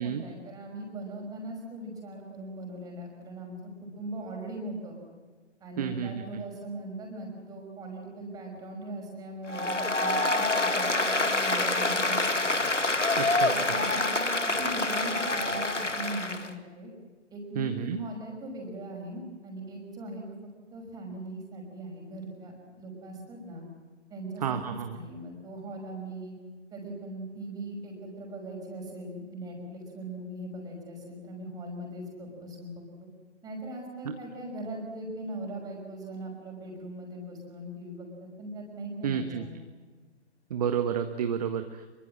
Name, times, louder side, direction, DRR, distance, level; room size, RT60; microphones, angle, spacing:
voice 1, 0.0-5.0 5.6-12.9 13.4-16.9 17.3-20.2 20.7-23.6 24.1-26.4 26.7-32.8 33.4-39.6, right 1 dB, 10° right, 1 dB, 5.7 m, -40 dB
voice 2, 5.8-6.2 13.2-13.5 17.6-18.0 24.4-25.0 34.0-34.1 39.0-39.4 40.5-41.9, right 8 dB, 35° right, 8 dB, 1.3 m, -30 dB
Applause, 9.5-16.5, left 2 dB, 85° left, 2.2 m, -27 dB
26.0 x 24.0 x 7.7 m, 1.4 s
figure-of-eight pair, 135°, 36 cm